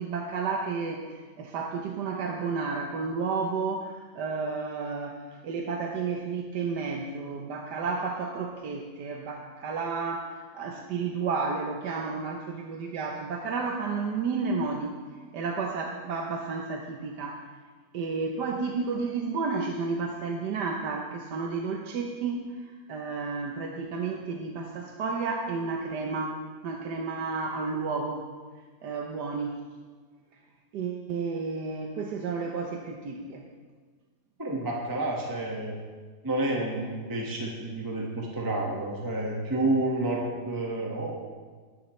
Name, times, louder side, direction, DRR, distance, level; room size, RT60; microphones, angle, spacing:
voice 1, 0.0-14.9 15.3-17.5 17.9-28.3 28.8-29.6 30.7-33.5, right 4 dB, 80° right, 2 dB, 1.5 m, -32 dB
voice 2, 34.4-35.8 36.2-41.1, right 2 dB, 15° right, -2 dB, 1.5 m, -29 dB
19.5 x 11.0 x 3.2 m, 1.5 s
omnidirectional pair, 1.8 m